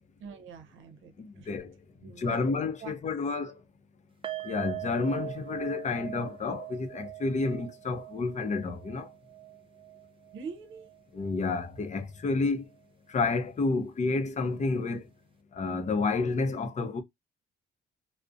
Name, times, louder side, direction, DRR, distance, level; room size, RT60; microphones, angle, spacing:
voice 1, 0.2-1.5 2.0-3.0 10.3-10.9, right 6 dB, 80° right, 0.6 m, -44 dB
voice 2, 1.2-1.7 2.2-3.6 4.4-9.1 11.1-12.6 13.1-15.1 15.5-17.0, left 3 dB, 35° left, 0.6 m, -30 dB
sound 1, 4.2-11.4 11.7-11.9 12.3-12.4, right 16 dB, 25° right, 0.4 m, -42 dB
2.4 x 2.1 x 2.5 m
cardioid pair, 90°, 20 cm